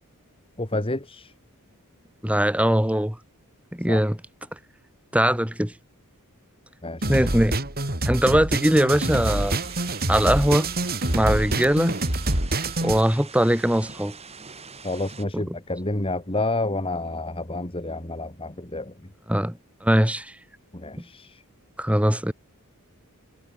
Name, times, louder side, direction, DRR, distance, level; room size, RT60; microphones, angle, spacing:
voice 1, 0.6-1.3 3.9-4.0 6.8-7.3 14.8-18.9 20.7-21.4, left 2 dB, 25° left, 2.4 m, -29 dB
voice 2, 2.2-3.2 3.7-4.2 5.1-5.7 7.1-7.6 8.0-9.6 10.1-10.7 11.1-12.0 12.8-14.1 15.3-15.6 19.3-19.5 19.8-20.3 21.8-22.3, equal, 5° right, 2.2 m, -21 dB
sound 1, 7.0-13.0, right 2 dB, 45° right, 6.4 m, -26 dB
sound 2, 8.9-15.2, right 5 dB, 30° right, 6.9 m, -44 dB
head